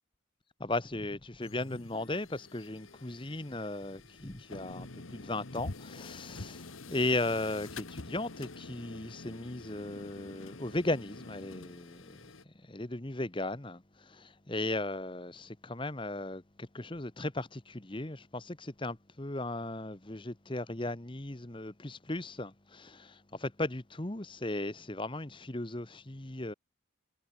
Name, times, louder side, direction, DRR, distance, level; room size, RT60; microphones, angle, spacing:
voice 1, 0.6-12.1 12.7-13.8 14.5-23.1 23.4-26.5, left 2 dB, 25° left, 1.2 m, -36 dB
sound 1, 1.4-12.4, left 3 dB, 85° left, 1.6 m, -47 dB
head